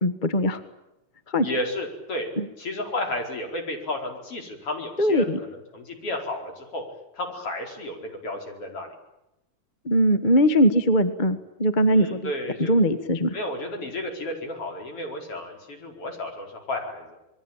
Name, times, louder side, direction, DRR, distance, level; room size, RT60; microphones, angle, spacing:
voice 1, 0.0-0.6 1.3-1.5 2.4-2.5 5.0-5.4 9.8-12.3 12.6-13.3, equal, 30° left, 11 dB, 0.9 m, -21 dB
voice 2, 1.4-2.3 2.6-5.3 5.5-6.8 7.1-8.9 11.9-12.7 13.3-17.1, left 1 dB, 50° left, 3 dB, 5.7 m, -32 dB
27.0 x 21.5 x 9.0 m, 0.91 s
omnidirectional pair, 3.4 m